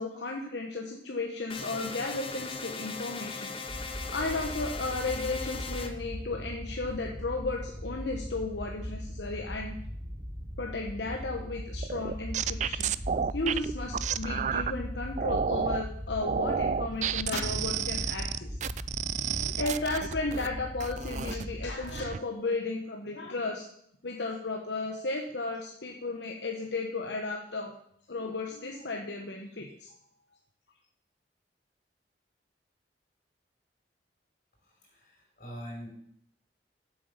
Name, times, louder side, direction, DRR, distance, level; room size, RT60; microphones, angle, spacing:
voice 1, 0.0-3.5 3.9-9.7 10.6-12.9 13.3-18.6 19.3-23.6 24.0-27.7 28.1-29.9, left 3 dB, 80° left, 2 dB, 1.1 m, -34 dB
sound 1, 1.5-5.9, left 4 dB, 30° left, 0.9 m, -39 dB
sound 2, 3.7-21.8, equal, 20° right, 1.2 m, -39 dB
sound 3, 11.8-14.7 15.2-15.8 16.2-20.5 20.8-21.5 21.8-22.2, right 7 dB, 40° right, 0.3 m, -31 dB
voice 2, 34.6-35.9, equal, 50° left, -1 dB, 5.2 m, -44 dB
7.9 x 7.7 x 6.9 m, 0.69 s
head